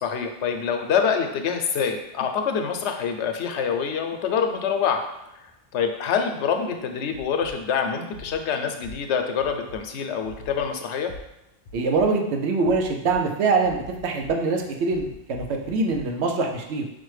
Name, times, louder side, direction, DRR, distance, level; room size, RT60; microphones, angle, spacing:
voice 1, 0.0-5.0 5.7-11.1, left 6 dB, 85° left, 5 dB, 0.9 m, -25 dB
sound 1, 7.1-7.5 8.1-8.4 8.8-8.9 9.4-9.8 10.2-10.6 11.1-11.2 11.6-12.0 12.6-13.2 13.6-14.3 14.9-16.0, left 3 dB, 60° left, 0.8 m, -43 dB
voice 2, 11.7-16.8, right 3 dB, 90° right, 2 dB, 0.9 m, -24 dB
5.9 x 2.2 x 3.1 m, 0.89 s
omnidirectional pair, 1.1 m